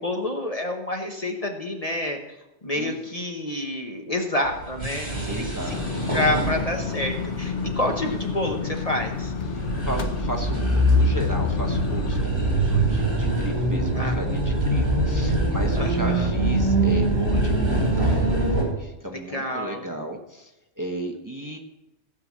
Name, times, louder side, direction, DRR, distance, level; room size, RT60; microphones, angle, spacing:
voice 1, 0.0-2.3 2.6-5.5 5.9-9.3 13.9-14.2 15.8-16.3 19.3-19.8, left 1 dB, 35° left, 3 dB, 1.1 m, -28 dB
sound 1, 4.5-18.6, right 1 dB, 50° right, 4.1 m, -24 dB
voice 2, 5.3-6.1 7.8-8.1 9.5-21.6, right 1 dB, 15° right, 2 dB, 1.0 m, -35 dB
sound 2, 5.7-12.2, left 7 dB, 75° left, 1.2 m, -31 dB
15.5 x 5.7 x 7.4 m, 0.95 s
omnidirectional pair, 1.2 m